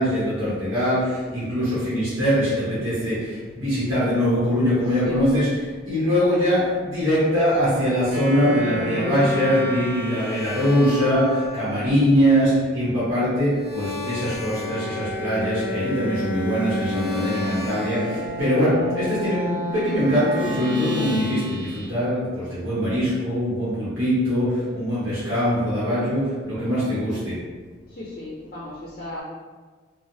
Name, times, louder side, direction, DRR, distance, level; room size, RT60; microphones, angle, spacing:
voice 1, 0.0-5.5 5.8-27.4, equal, 85° right, -11 dB, 1.0 m, -22 dB
voice 2, 4.8-5.3 26.6-26.9 27.9-29.2, left 1 dB, 45° left, -5 dB, 0.4 m, -36 dB
sound 1, 8.1-11.7 13.5-21.9, left 1 dB, 60° right, 1.0 m, -30 dB
3.1 x 2.0 x 2.6 m, 1.4 s
head